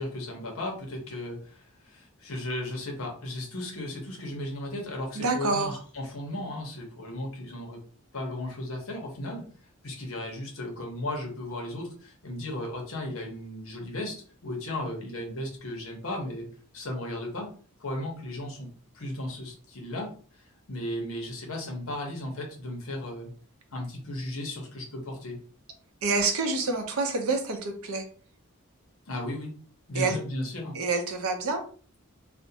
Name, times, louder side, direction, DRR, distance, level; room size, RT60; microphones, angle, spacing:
voice 1, 0.0-7.8 8.1-9.4 9.8-16.5 16.7-17.5 17.8-18.7 18.9-23.3 23.7-25.4 29.1-29.6 29.9-30.8, left 1 dB, 75° left, 1 dB, 0.8 m, -35 dB
voice 2, 5.1-5.8 26.0-28.0 29.9-30.2 30.7-31.6, right 3 dB, 85° right, 5 dB, 0.6 m, -27 dB
2.5 x 2.1 x 2.7 m, 0.43 s
head